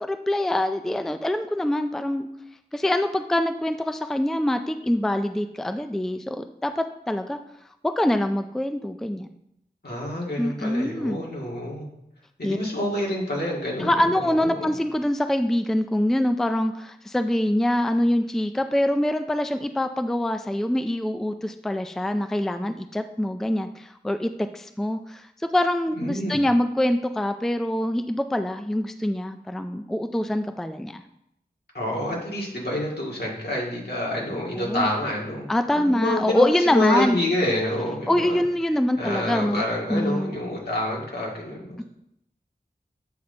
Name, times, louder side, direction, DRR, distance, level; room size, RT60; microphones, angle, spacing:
voice 1, 0.0-2.3 2.7-7.4 7.8-9.3 10.4-11.2 12.4-12.6 13.8-31.0 34.5-34.9 35.5-37.2 38.1-39.6 39.9-40.3 41.8-41.9, left 1 dB, ahead, 8 dB, 0.4 m, -24 dB
voice 2, 9.8-11.9 12.4-14.7 25.9-26.4 31.7-38.4 39.0-41.8, left 1 dB, 70° left, -3 dB, 2.0 m, -28 dB
8.0 x 5.3 x 3.9 m, 0.78 s
wide cardioid pair, 50°, 17 cm